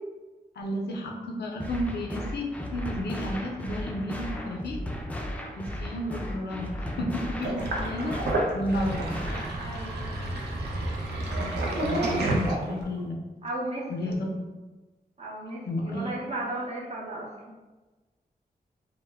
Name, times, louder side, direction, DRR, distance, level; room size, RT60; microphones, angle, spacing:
voice 1, 0.6-4.8 5.6-8.2 8.5-9.1 11.3-13.3 13.9-14.4 15.7-16.3, left 1 dB, 90° left, 1 dB, 0.4 m, -32 dB
sound 1, 1.6-9.6, left 1 dB, 10° left, 0.3 m, -35 dB
Sink (filling or washing), 7.4-13.0, right 2 dB, 85° right, 0.5 m, -30 dB
voice 2, 9.6-10.1 13.4-14.2 15.2-17.3, right 1 dB, 40° right, -5 dB, 0.7 m, -35 dB
2.0 x 2.0 x 3.3 m, 1.2 s
cardioid pair, 65°, 17 cm